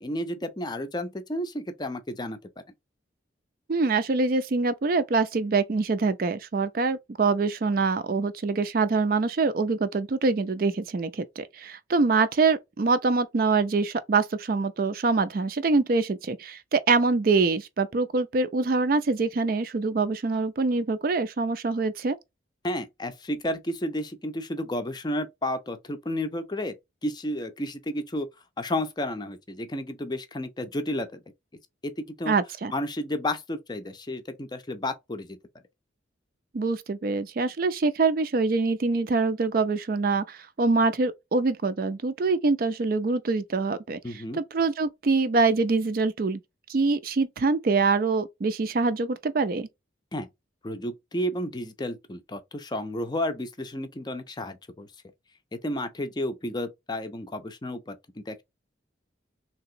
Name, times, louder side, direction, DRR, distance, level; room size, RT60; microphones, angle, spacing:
voice 1, 0.0-2.4 22.6-26.8 27.0-28.3 28.6-31.2 31.8-32.3 32.7-35.4 44.0-44.4 50.1-50.3 50.6-54.9 55.5-58.4, left 1 dB, 20° left, 0.5 m, -32 dB
voice 2, 3.7-22.2 32.3-32.7 36.5-46.4 46.7-49.7, right 3 dB, 50° right, 0.4 m, -25 dB
3.3 x 2.9 x 2.7 m
head